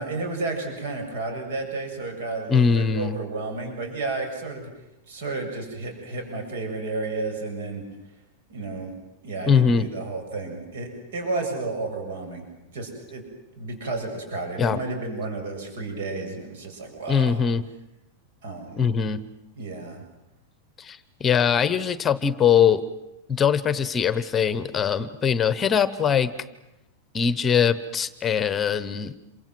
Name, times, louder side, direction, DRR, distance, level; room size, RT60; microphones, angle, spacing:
voice 1, 0.0-4.7 5.1-7.8 8.5-8.9 9.2-12.4 12.7-13.2 13.6-17.4 18.4-18.9 19.6-20.0, right 3 dB, 75° right, 4 dB, 7.3 m, -32 dB
voice 2, 2.5-3.2 9.4-9.8 14.6-14.8 17.1-17.6 18.7-19.2 20.8-22.8 23.3-26.3 27.1-29.1, left 7 dB, 15° left, 15 dB, 0.9 m, -22 dB
27.5 x 24.0 x 7.8 m, 0.92 s
supercardioid pair, 165°, 0 cm